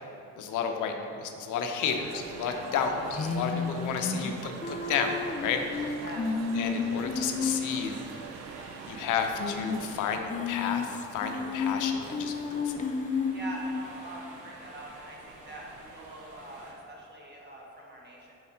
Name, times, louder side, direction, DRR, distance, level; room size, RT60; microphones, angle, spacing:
voice 1, 0.4-6.0 6.5-8.0 8.9-12.9, left 6 dB, 85° left, 5 dB, 0.6 m, -32 dB
sound 1, 1.8-10.2, right 6 dB, 60° right, 0.5 m, -44 dB
sound 2, 3.1-8.0 8.3-8.4 8.6-8.7 9.3-9.9 10.2-13.8, left 5 dB, 25° left, 0.4 m, -32 dB
sound 3, 3.3-16.7, right 2 dB, 85° right, 1.0 m, -51 dB
voice 2, 6.0-6.4 13.1-18.4, right 1 dB, 35° right, -3 dB, 1.4 m, -44 dB
4.7 x 4.2 x 5.6 m, 2.9 s
cardioid pair, 90°, 30 cm